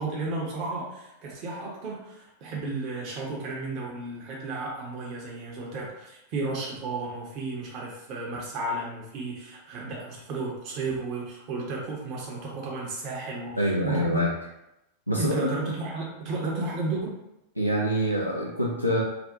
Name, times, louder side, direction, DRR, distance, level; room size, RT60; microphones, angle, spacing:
voice 1, 0.0-14.3 15.2-17.2, right 3 dB, 40° right, -3 dB, 0.5 m, -33 dB
voice 2, 13.6-14.3 15.1-15.3 17.6-19.0, equal, 90° left, -4 dB, 0.3 m, -25 dB
2.4 x 2.0 x 2.7 m, 0.87 s
figure-of-eight pair, 90°, 0 cm